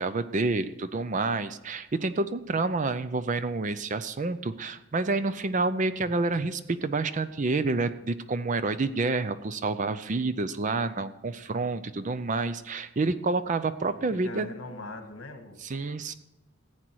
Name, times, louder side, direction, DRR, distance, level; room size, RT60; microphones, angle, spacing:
voice 1, 0.0-14.5 15.6-16.1, right 3 dB, 35° right, 13 dB, 0.5 m, -28 dB
voice 2, 13.8-15.6, left 2 dB, 60° left, 6 dB, 1.7 m, -41 dB
15.0 x 8.9 x 4.7 m, 0.94 s
head